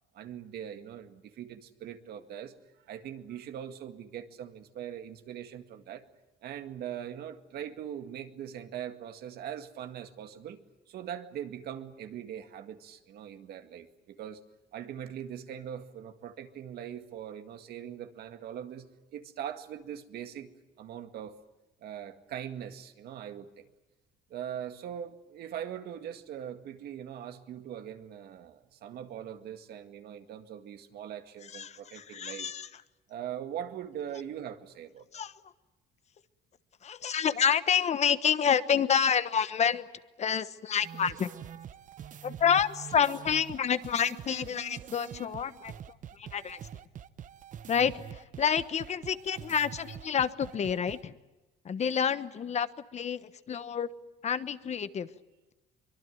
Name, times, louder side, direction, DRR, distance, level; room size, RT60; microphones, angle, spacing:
voice 1, 0.1-2.5 2.9-6.0 6.4-10.6 10.9-14.4 14.7-20.5 20.8-21.4 21.8-23.7 24.3-32.6 33.1-35.1, right 9 dB, 70° right, 7 dB, 2.0 m, -41 dB
voice 2, 31.5-32.7 35.1-35.3 36.8-39.9 40.2-41.3 42.2-45.8 46.1-46.6 47.7-51.1 51.6-53.9 54.2-55.1, left 7 dB, 40° left, 13 dB, 1.2 m, -28 dB
sound 1, 40.8-51.0, right 9 dB, 50° right, 1.0 m, -45 dB
24.0 x 22.5 x 9.3 m, 1.1 s
cardioid pair, 110°, 17 cm